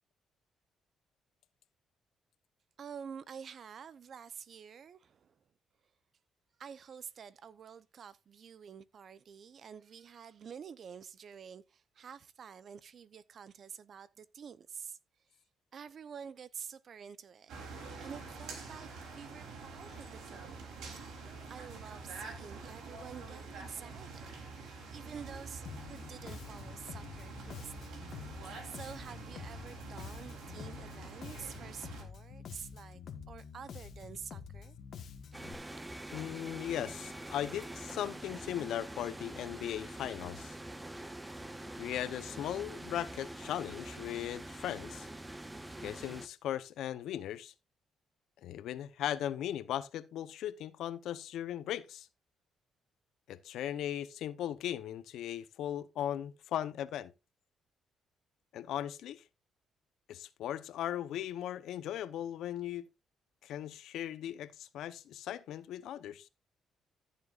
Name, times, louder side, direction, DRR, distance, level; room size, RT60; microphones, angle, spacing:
voice 1, 2.8-5.4 6.6-15.0 15.3-15.4 15.7-17.6 18.0-20.9 21.5-28.0 28.6-33.0 33.3-34.8, right 7 dB, 55° right, 0.7 m, -49 dB
sound 1, 17.5-32.0, right 4 dB, 80° right, 3.3 m, -47 dB
Bass guitar, 25.7-35.5, left 7 dB, 65° left, 1.4 m, -48 dB
sound 2, 35.3-46.3, right 1 dB, 15° right, 1.1 m, -45 dB
voice 2, 36.1-40.6 41.8-45.1 45.8-47.5 48.4-52.1 53.3-57.1 58.5-59.2 60.1-62.9 63.4-66.3, left 11 dB, 80° left, 0.8 m, -38 dB
14.5 x 7.4 x 2.5 m
cardioid pair, 90°, 0 cm